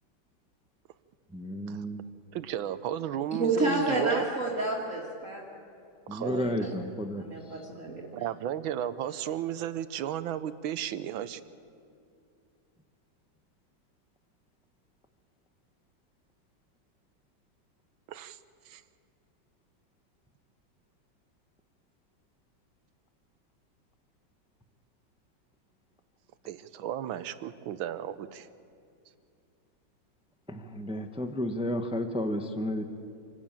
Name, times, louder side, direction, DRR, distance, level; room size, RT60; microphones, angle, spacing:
voice 1, 1.3-2.0 6.1-7.2 7.5-7.7 30.5-32.8, left 1 dB, 5° right, 6 dB, 0.6 m, -32 dB
voice 2, 2.3-4.2 6.1-6.6 8.1-11.4 18.1-18.4 18.7-18.8 26.4-28.5, right 10 dB, 85° right, 13 dB, 1.6 m, -34 dB
voice 3, 3.3-5.4 6.2-6.7 7.2-8.0, right 2 dB, 40° right, -4 dB, 2.4 m, -30 dB
27.0 x 12.5 x 8.9 m, 2.4 s
omnidirectional pair, 2.1 m